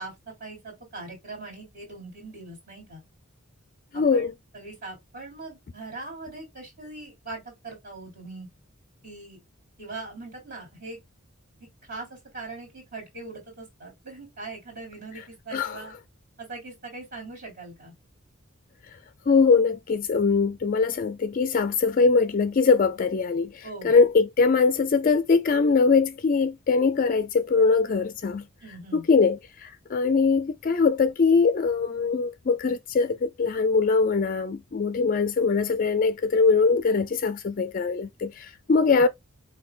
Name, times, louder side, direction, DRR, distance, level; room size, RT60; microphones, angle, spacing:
voice 1, 0.0-3.0 3.9-8.5 9.0-9.4 9.8-11.0 11.8-15.9 16.4-17.9 23.6-23.9 28.6-29.0 38.7-39.0, right 3 dB, 45° right, 3.3 m, -41 dB
voice 2, 3.9-4.3 15.5-15.8 19.3-28.4 28.9-39.1, left 4 dB, 40° left, 0.4 m, -22 dB
7.5 x 2.7 x 2.4 m
head